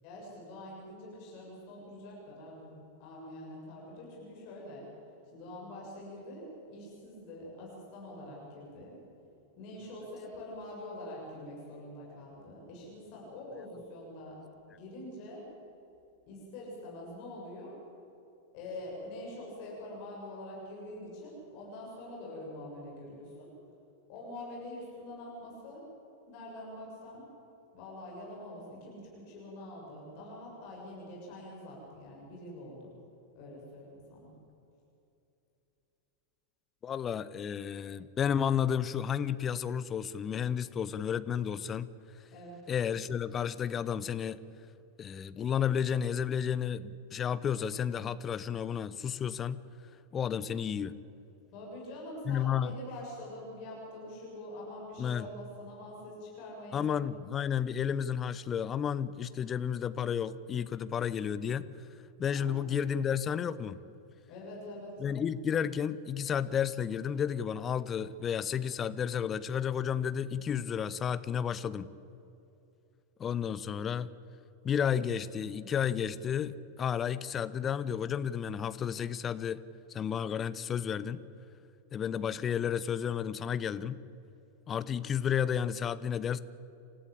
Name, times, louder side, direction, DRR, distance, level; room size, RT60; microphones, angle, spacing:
voice 1, 0.0-4.9 5.3-9.0 9.6-14.4 14.7-15.4 16.3-17.8 18.5-23.5 24.1-25.9 26.3-27.2 27.7-32.9 33.3-34.3 42.3-42.6 51.5-56.9 62.3-62.8 64.3-65.0, left 1 dB, 45° left, -3 dB, 7.6 m, -45 dB
voice 2, 36.8-41.9 42.7-44.4 45.0-49.6 50.1-50.9 52.3-52.7 55.0-55.3 56.7-61.7 62.2-63.8 65.0-71.9 73.2-74.1 74.6-79.6 79.9-81.2 81.9-84.0 84.7-86.4, left 8 dB, 25° left, 15 dB, 0.8 m, -32 dB
28.0 x 14.5 x 8.5 m, 2.8 s
figure-of-eight pair, 90°, 0 cm